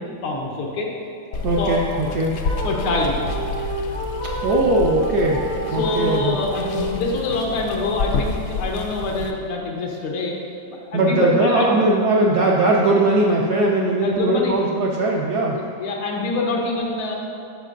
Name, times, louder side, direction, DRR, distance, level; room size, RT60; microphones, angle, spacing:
voice 1, 0.2-0.9 1.3-2.0 2.6-3.3 5.7-10.4 10.7-11.8 14.0-14.6 15.5-17.1, left 2 dB, 90° left, 0 dB, 1.8 m, -25 dB
Water, 1.3-9.3, left 4 dB, 75° left, 1.0 m, -29 dB
voice 2, 1.4-2.3 4.4-5.4 5.7-6.3 10.9-15.6, right 2 dB, 75° right, -2 dB, 0.9 m, -19 dB
sound 1, 2.4-7.3, right 1 dB, 20° right, 0.5 m, -30 dB
13.0 x 5.1 x 2.5 m, 2.6 s
omnidirectional pair, 2.3 m